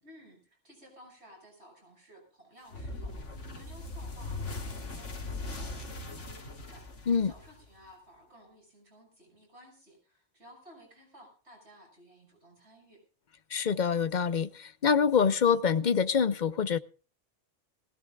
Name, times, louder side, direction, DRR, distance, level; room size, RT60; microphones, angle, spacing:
voice 1, 0.0-13.0, equal, 60° right, 6.7 m, -56 dB
sound 1, 2.7-7.9, left 2 dB, 80° left, 2.4 m, -40 dB
voice 2, 13.5-16.8, left 6 dB, 45° left, 0.7 m, -26 dB
19.5 x 17.0 x 2.3 m
omnidirectional pair, 1.3 m